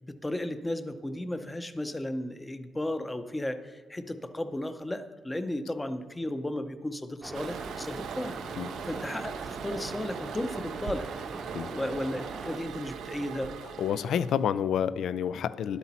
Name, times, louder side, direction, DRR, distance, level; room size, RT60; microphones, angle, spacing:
voice 1, 0.2-8.4 8.8-11.1 11.7-13.5, left 1 dB, 15° left, 9 dB, 0.6 m, -34 dB
sound 1, 7.2-12.6, right 2 dB, 25° right, 0.7 m, -41 dB
Toilet flush, 7.3-14.4, right 8 dB, 75° right, 0.5 m, -40 dB
voice 2, 13.8-15.8, left 8 dB, 70° left, 15 dB, 0.4 m, -29 dB
11.0 x 8.2 x 4.2 m, 1.4 s
cardioid pair, 90°, 0 cm